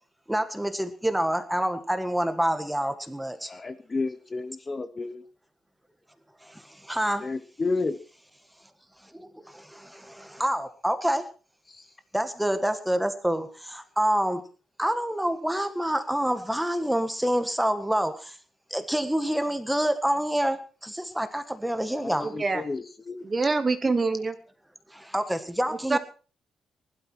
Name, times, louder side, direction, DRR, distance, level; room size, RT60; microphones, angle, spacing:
voice 1, 0.3-3.5 6.4-7.2 9.0-11.2 12.1-14.4 14.8-18.4 18.7-22.3 24.9-26.0, right 1 dB, 5° right, 9 dB, 1.6 m, -27 dB
voice 2, 3.4-5.2 7.2-8.0 11.7-11.9 21.9-23.2, left 3 dB, 20° left, 11 dB, 0.8 m, -32 dB
voice 3, 23.2-24.3 25.9-26.0, right 3 dB, 20° right, 11 dB, 1.2 m, -24 dB
20.5 x 12.0 x 4.6 m, 0.36 s
cardioid pair, 160°, 0 cm